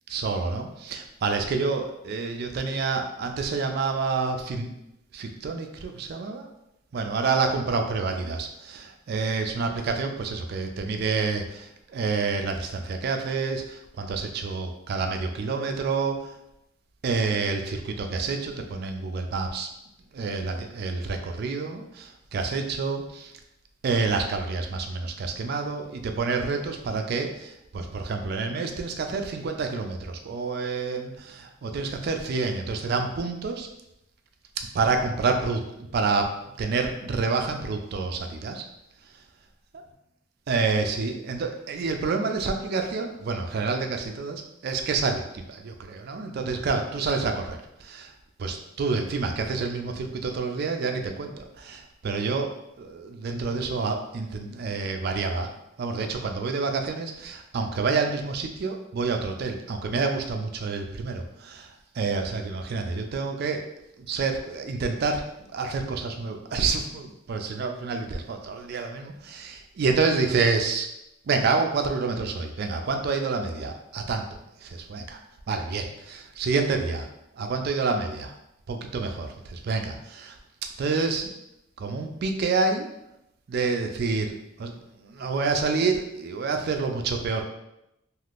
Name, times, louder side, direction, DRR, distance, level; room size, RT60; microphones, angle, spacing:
voice 1, 0.1-4.7 5.1-6.5 6.9-16.4 17.0-19.7 20.1-23.3 23.8-33.7 34.6-36.3 36.6-38.6 40.5-48.1 48.4-55.5 55.8-63.6 64.0-65.2 65.5-70.9 71.3-74.2 74.6-75.2 75.5-77.1 77.3-78.4 78.7-80.4 80.8-81.3 81.8-82.9 83.5-87.4, right 4 dB, 50° right, 5 dB, 0.3 m, -28 dB
3.4 x 2.5 x 2.4 m, 0.85 s
head